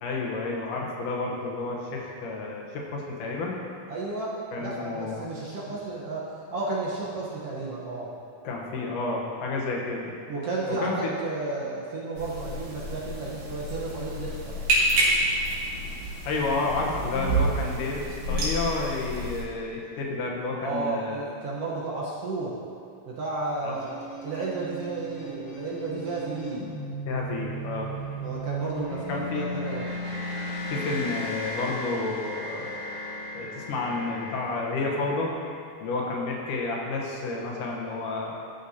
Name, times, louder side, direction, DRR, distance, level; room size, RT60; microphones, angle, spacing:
voice 1, 0.0-3.6 4.5-5.3 8.4-10.1 10.7-11.1 16.3-21.2 23.6-23.7 27.1-27.9 29.1-29.4 30.7-32.7 33.3-35.3 35.8-38.4, left 3 dB, 80° left, -2 dB, 2.6 m, -30 dB
voice 2, 3.9-8.1 10.3-14.6 20.6-22.5 23.1-23.9 24.2-26.7 28.2-29.9, right 3 dB, 60° right, -6 dB, 1.8 m, -32 dB
sound 1, 12.2-19.4, right 1 dB, 80° right, 3.6 m, -28 dB
sound 2, 23.7-35.3, equal, 55° left, 2.0 m, -36 dB
14.0 x 6.5 x 2.8 m, 2.5 s
omnidirectional pair, 3.7 m